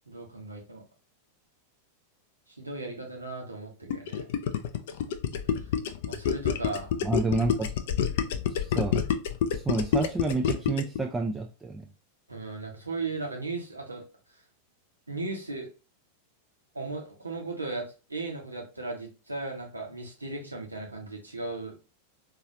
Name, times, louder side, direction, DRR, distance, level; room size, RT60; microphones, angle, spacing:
voice 1, 0.1-0.8 2.6-4.3 6.1-6.9 12.3-14.1 15.1-15.7 16.7-21.8, right 3 dB, 80° right, 0 dB, 1.1 m, -36 dB
Gurgling, 3.9-11.0, left 8 dB, 55° left, 0.4 m, -27 dB
voice 2, 7.0-7.7 8.5-9.0 9.5-11.9, right 3 dB, 10° right, 2 dB, 0.4 m, -29 dB
3.8 x 2.9 x 2.8 m, 0.31 s
figure-of-eight pair, 90°, 0 cm